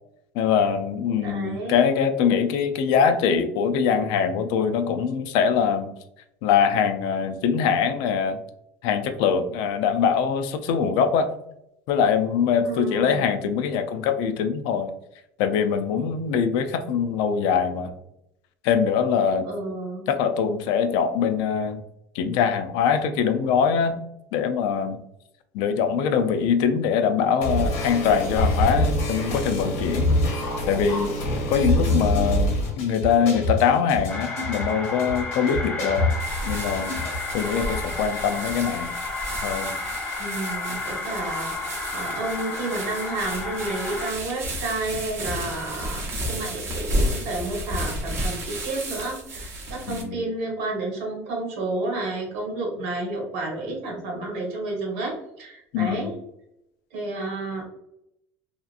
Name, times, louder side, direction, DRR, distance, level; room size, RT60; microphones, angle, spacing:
voice 1, 0.3-5.9 6.4-8.4 8.8-11.3 11.9-14.9 15.4-17.9 18.6-19.5 20.1-21.8 22.1-24.0 24.3-25.0 25.5-30.3 30.7-31.1 31.5-36.1 36.5-36.9 37.3-38.9 39.4-39.7 49.9-50.2 55.7-56.1, left 7 dB, 70° left, 8 dB, 0.4 m, -23 dB
voice 2, 1.2-1.8 12.6-13.3 19.4-20.1 40.2-56.1 56.9-57.6, right 2 dB, 80° right, 0 dB, 1.0 m, -31 dB
sound 1, 27.4-37.4, left 1 dB, 90° left, 1.0 m, -25 dB
sound 2, 34.1-44.1, left 3 dB, 20° left, 0.6 m, -32 dB
sound 3, 36.2-50.0, right 1 dB, 35° right, 0.7 m, -32 dB
2.7 x 2.4 x 2.4 m, 0.81 s
supercardioid pair, 125°, 7 cm